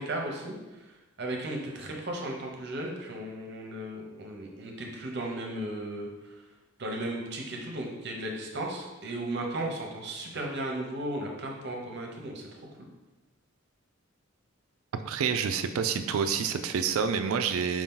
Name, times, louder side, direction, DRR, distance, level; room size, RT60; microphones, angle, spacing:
voice 1, 0.0-6.4 6.8-12.5 12.8-12.9, right 1 dB, 55° right, 1 dB, 0.7 m, -35 dB
voice 2, 14.9-17.8, right 6 dB, 80° right, 9 dB, 0.3 m, -28 dB
4.8 x 2.8 x 3.7 m, 1.1 s
head